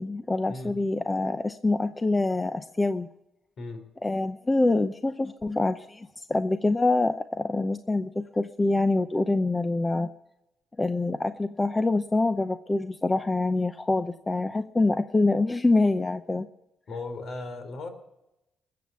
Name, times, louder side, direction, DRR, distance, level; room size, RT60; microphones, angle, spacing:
voice 1, 0.0-3.1 4.0-10.1 10.8-16.5, left 2 dB, 20° left, 10 dB, 0.7 m, -25 dB
voice 2, 16.9-17.9, left 2 dB, 55° left, 7 dB, 3.9 m, -36 dB
21.0 x 7.8 x 8.3 m, 0.91 s
cardioid pair, 90°, 0 cm